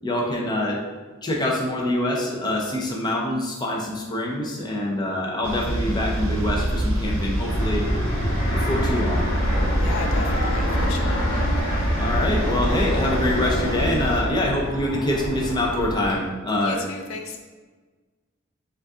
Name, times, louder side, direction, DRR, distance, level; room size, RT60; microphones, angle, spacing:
voice 1, 0.0-0.8 1.2-7.9 8.5-9.3 12.0-16.8, left 1 dB, 20° left, -2 dB, 0.6 m, -25 dB
sound 1, 5.4-14.2, right 1 dB, 70° right, 0.7 m, -26 dB
Fixed-wing aircraft airplane, 7.5-16.1, equal, 40° left, 1.4 m, -27 dB
voice 2, 9.7-11.3 16.6-17.4, left 4 dB, 65° left, 4 dB, 0.4 m, -35 dB
5.1 x 2.5 x 3.6 m, 1.3 s
head